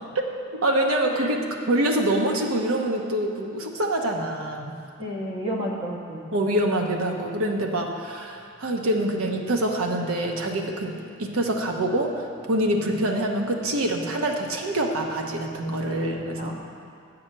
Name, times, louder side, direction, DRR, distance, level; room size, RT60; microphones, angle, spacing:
voice 1, 0.5-1.4 1.7-4.8 6.3-16.5, right 1 dB, 70° right, 2 dB, 1.0 m, -25 dB
voice 2, 5.0-6.3 16.4-16.5, equal, 25° right, -2 dB, 1.2 m, -31 dB
8.7 x 4.9 x 7.5 m, 2.4 s
head